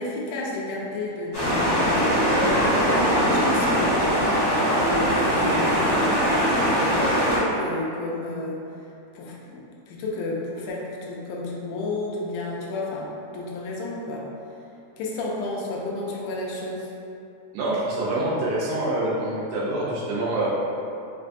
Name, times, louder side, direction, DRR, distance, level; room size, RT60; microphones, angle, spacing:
voice 1, 0.0-2.0 2.3-4.2 5.2-6.3 6.8-8.6 9.2-14.3 15.0-16.9, left 2 dB, 85° left, -3 dB, 2.1 m, -32 dB
sound 1, 1.3-7.4, equal, 55° left, 0.7 m, -21 dB
voice 2, 17.5-20.6, right 1 dB, 80° right, -5 dB, 1.9 m, -26 dB
5.1 x 2.2 x 2.5 m, 2.7 s
omnidirectional pair, 3.5 m